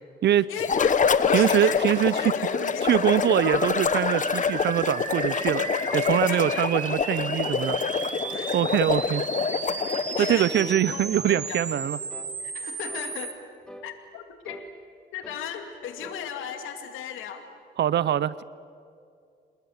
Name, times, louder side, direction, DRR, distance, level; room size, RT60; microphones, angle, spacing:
voice 1, 0.5-3.3 5.9-6.7 8.3-8.6 8.9-9.0 9.9-12.0 12.4-13.4 13.8-14.7 15.1-17.5, left 8 dB, 85° left, 6 dB, 2.5 m, -36 dB
sound 1, 0.6-10.5, left 6 dB, 40° left, 1.2 m, -26 dB
voice 2, 1.3-2.3 2.8-5.6 5.9-7.8 8.5-9.2 10.2-12.0 17.8-18.4, right 11 dB, 60° right, 19 dB, 0.6 m, -23 dB
sound 2, 3.4-13.3, right 4 dB, 35° right, 2.1 m, -34 dB
sound 3, 4.3-4.6 5.1-5.3 5.9-6.1 6.7-6.9 7.4-7.7 8.2-8.5 9.0-9.2 9.8-10.0 10.5-10.8 11.3-11.6 12.1-12.3 12.9-13.1 13.6-13.9 14.4-14.7 15.2-15.5 15.8-16.3, equal, 5° left, 2.2 m, -44 dB
27.5 x 20.0 x 8.6 m, 2.4 s
cardioid pair, 90°, 20 cm